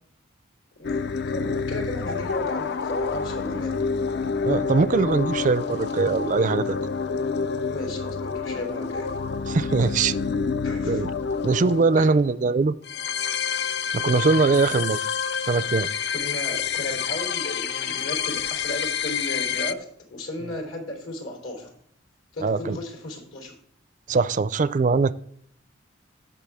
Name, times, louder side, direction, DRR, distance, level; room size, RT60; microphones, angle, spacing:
voice 1, 0.8-3.8 7.1-7.3 7.6-9.1 10.6-11.0 12.0-12.1 16.1-21.7 22.3-23.5, left 1 dB, 75° left, 3.3 m, -35 dB
sound 1, 0.8-19.7, left 6 dB, 55° left, 0.4 m, -28 dB
voice 2, 4.4-6.8 9.5-10.1 10.9-11.1 11.4-12.7 13.9-15.0 15.4-15.9 22.4-22.8 24.1-25.1, right 4 dB, 40° right, 0.4 m, -21 dB
16.0 x 6.1 x 3.5 m
head